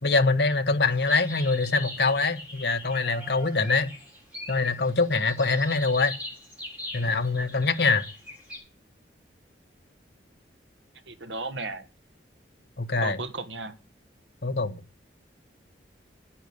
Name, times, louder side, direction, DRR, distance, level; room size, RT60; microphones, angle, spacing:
voice 1, 0.0-3.9 4.5-6.1 6.9-8.0 12.8-13.2 14.4-14.8, left 3 dB, 65° left, 1.2 m, -24 dB
sound 1, 0.8-8.6, left 1 dB, 10° right, 7.7 m, -41 dB
voice 2, 11.1-11.8 13.0-13.7, right 3 dB, 80° right, 1.5 m, -34 dB
10.0 x 9.6 x 8.6 m
head